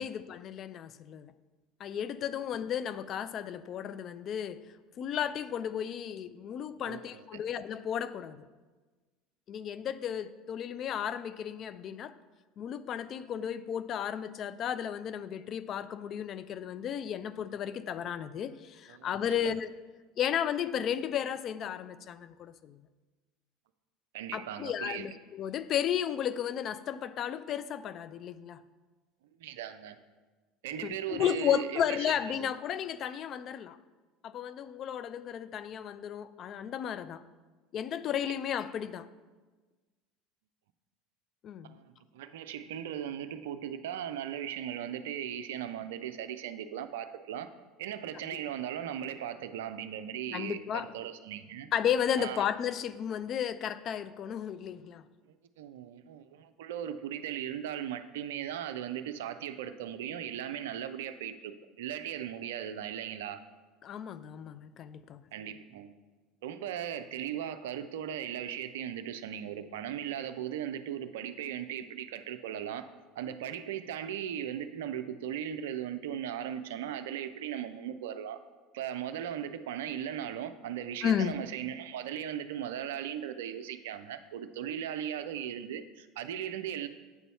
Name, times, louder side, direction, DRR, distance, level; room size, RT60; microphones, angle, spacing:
voice 1, 0.0-1.3 1.8-4.6 5.0-8.4 9.5-12.1 12.6-19.7 20.2-22.8 24.3-28.6 30.8-33.8 34.2-37.2 37.7-39.1 41.4-41.8 48.2-48.4 50.3-50.9 51.7-55.0 63.8-65.2 81.0-81.3, left 9 dB, 40° left, 0.3 m, -33 dB
voice 2, 6.8-7.4 18.9-19.4 24.1-25.1 29.4-30.0 30.6-32.5 41.6-47.5 47.8-51.7 52.2-52.4 55.6-63.4 65.3-65.9 66.4-72.9 73.2-78.4 78.7-86.9, right 10 dB, 65° right, 0.4 m, -38 dB
8.1 x 4.0 x 5.5 m
figure-of-eight pair, 70°, 0 cm